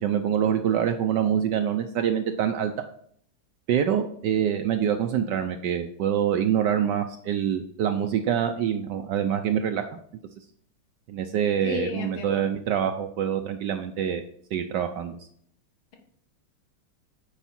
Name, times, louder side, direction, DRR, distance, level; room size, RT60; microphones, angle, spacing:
voice 1, 0.0-2.7 3.7-9.8 11.1-14.2 14.5-15.2, right 9 dB, 75° right, 7 dB, 1.0 m, -25 dB
voice 2, 11.6-12.4, left 5 dB, 75° left, 1 dB, 2.3 m, -33 dB
8.1 x 4.9 x 4.3 m, 0.63 s
omnidirectional pair, 2.3 m